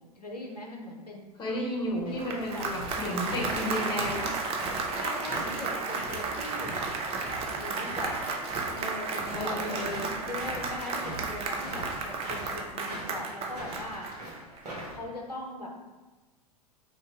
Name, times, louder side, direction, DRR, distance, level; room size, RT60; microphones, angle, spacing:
voice 1, 0.0-1.3 2.0-2.9 5.0-6.9 7.3-8.3 8.7-9.6 10.2-14.1 14.9-15.7, left 2 dB, 90° left, 0 dB, 0.6 m, -40 dB
voice 2, 1.4-4.4 9.3-10.1, equal, 25° left, -2 dB, 1.0 m, -32 dB
sound 1, 1.8-15.0, right 1 dB, 75° right, 1.3 m, -42 dB
Applause, 2.0-14.6, right 4 dB, 30° right, 0.5 m, -33 dB
3.2 x 2.7 x 3.4 m, 1.2 s
figure-of-eight pair, 95°, 20 cm